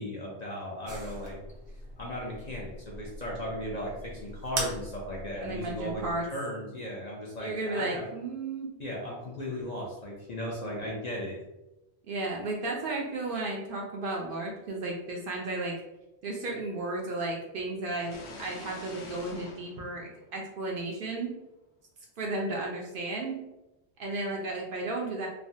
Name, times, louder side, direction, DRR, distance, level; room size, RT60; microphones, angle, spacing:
voice 1, 0.0-1.4 2.0-6.0 6.3-8.1 8.8-11.4, equal, 50° left, -3 dB, 0.5 m, -36 dB
sound 1, 0.9-6.1, right 2 dB, 85° right, 1.0 m, -41 dB
voice 2, 5.4-6.3 7.4-8.7 12.1-15.7 16.2-21.3 22.2-23.4 24.0-25.3, right 2 dB, 60° right, -1 dB, 0.6 m, -34 dB
sound 2, 18.0-20.8, left 2 dB, 75° left, 0.8 m, -46 dB
3.2 x 2.1 x 2.6 m, 0.97 s
omnidirectional pair, 1.1 m